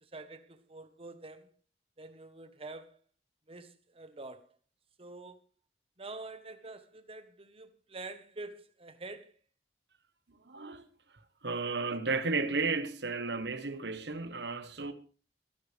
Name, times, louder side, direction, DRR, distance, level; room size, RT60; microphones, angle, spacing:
voice 1, 0.0-1.5 2.0-3.0 3.5-4.5 5.0-5.4 6.0-9.3, right 2 dB, 35° right, 1.2 m, -46 dB
voice 2, 10.3-10.9 11.4-14.9, right 3 dB, 70° right, 1.3 m, -33 dB
21.0 x 11.0 x 3.4 m
head